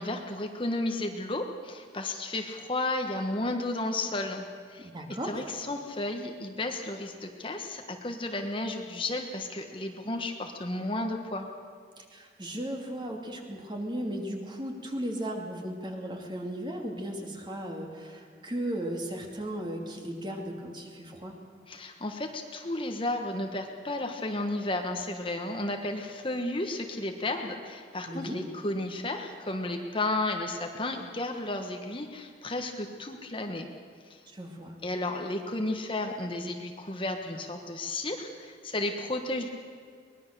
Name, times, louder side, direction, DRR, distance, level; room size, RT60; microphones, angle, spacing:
voice 1, 0.0-11.5 21.7-33.7 34.1-34.2 34.8-39.5, left 2 dB, 30° left, 4 dB, 1.3 m, -33 dB
voice 2, 4.8-5.4 12.0-21.3 28.0-28.4 34.3-34.8, right 1 dB, 25° right, 2 dB, 2.8 m, -36 dB
23.5 x 20.0 x 6.8 m, 2.1 s
head